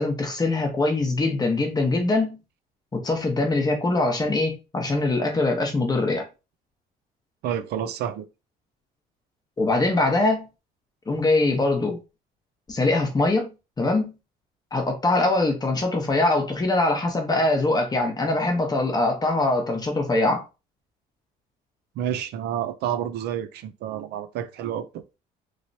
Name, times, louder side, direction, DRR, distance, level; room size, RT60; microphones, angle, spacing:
voice 1, 0.0-2.4 2.9-6.3 9.6-10.5 11.1-12.0 12.7-13.5 13.8-14.1 14.7-20.4, left 2 dB, 25° left, 1.0 m, -23 dB
voice 2, 7.4-8.3 22.0-25.0, right 9 dB, 75° right, 0.5 m, -29 dB
3.0 x 2.9 x 2.7 m
cardioid pair, 110°, 17 cm